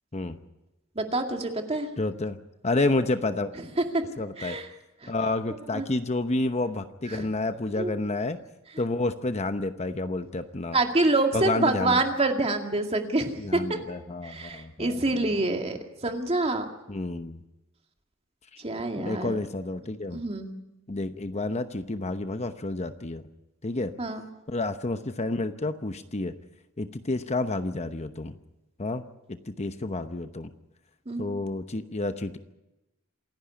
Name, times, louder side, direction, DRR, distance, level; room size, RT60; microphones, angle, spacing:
voice 1, 1.0-1.9 4.4-4.7 5.0-5.1 5.7-5.9 7.1-7.3 7.8-7.9 10.7-13.8 14.2-16.7 18.6-19.3 20.1-20.5 24.0-24.3 31.1-31.4, right 2 dB, 30° right, 4 dB, 2.2 m, -27 dB
voice 2, 2.0-2.4 2.6-3.5 4.2-4.6 5.1-8.4 8.8-10.8 11.3-12.0 13.4-15.0 16.9-17.4 19.0-20.2 20.9-23.2 23.6-23.9 24.5-26.3 26.8-28.4 28.8-29.0 29.3-30.5 31.2-32.4, left 2 dB, 35° left, 9 dB, 0.9 m, -30 dB
27.5 x 11.0 x 9.9 m, 0.99 s
head